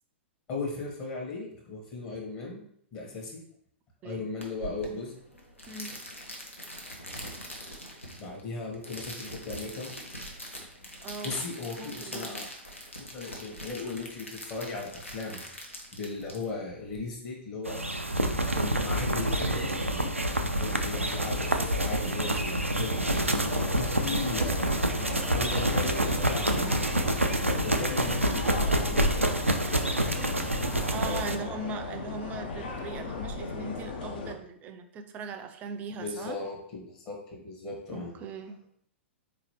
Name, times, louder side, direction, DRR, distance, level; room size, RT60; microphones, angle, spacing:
voice 1, 0.5-2.6 2.9-3.4 4.0-5.1 8.2-9.9 11.2-12.5 13.0-18.1 18.5-20.1 20.5-26.8 27.5-29.4 30.6-31.4 36.0-38.1, left 3 dB, 30° left, -2 dB, 1.0 m, -37 dB
sound 1, 4.4-17.0, equal, 85° left, 0.8 m, -43 dB
voice 2, 5.7-6.0 11.0-11.4 11.8-12.4 24.0-24.3 30.9-36.4 37.9-38.6, right 3 dB, 25° right, 7 dB, 0.4 m, -39 dB
sound 2, 17.7-31.4, right 1 dB, 90° right, 0.4 m, -27 dB
sound 3, 23.4-34.3, left 2 dB, 50° left, 0.5 m, -35 dB
4.0 x 3.0 x 2.9 m, 0.68 s
figure-of-eight pair, 105°, 7 cm